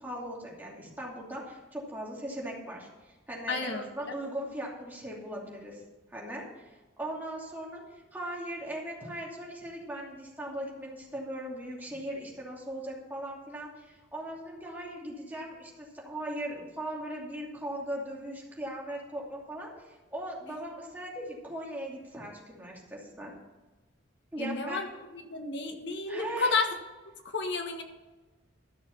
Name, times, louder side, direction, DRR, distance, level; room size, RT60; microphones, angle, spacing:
voice 1, 0.0-5.8 6.1-23.3 24.3-24.8 26.1-26.5, right 1 dB, 10° right, -3 dB, 2.6 m, -39 dB
voice 2, 3.5-4.2 24.4-24.9 25.3-26.7 27.3-27.8, left 4 dB, 65° left, 5 dB, 1.4 m, -31 dB
13.0 x 6.6 x 5.8 m, 1.2 s
head